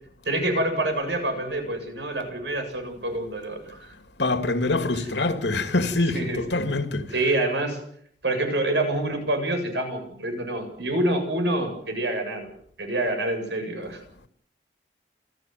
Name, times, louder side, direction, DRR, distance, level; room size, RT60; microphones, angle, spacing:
voice 1, 0.2-3.9 4.9-5.1 6.1-6.4 7.1-7.8 8.2-12.5 12.8-14.0, right 1 dB, 80° right, 7.9 m, -27 dB
voice 2, 4.2-7.0, left 2 dB, 85° left, 2.7 m, -24 dB
29.5 x 13.5 x 9.4 m
head